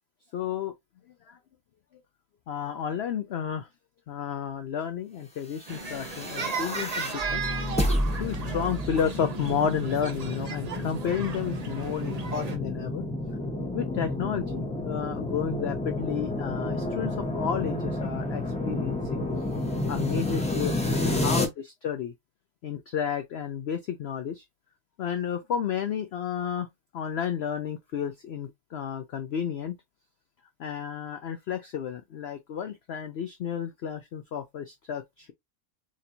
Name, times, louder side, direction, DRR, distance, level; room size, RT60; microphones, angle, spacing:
voice 1, 0.3-0.7 1.3-1.4 2.5-3.7 4.1-7.4 7.8-7.9 8.2-13.1 13.7-19.3 19.9-22.1 22.6-24.4 25.0-26.7 26.9-29.8 30.6-35.3, left 8 dB, 85° left, 0.5 m, -32 dB
sound 1, 5.7-21.5, left 1 dB, 5° left, 0.6 m, -30 dB
sound 2, 5.7-12.6, right 5 dB, 55° right, 0.4 m, -35 dB
4.3 x 3.0 x 2.6 m
omnidirectional pair, 1.7 m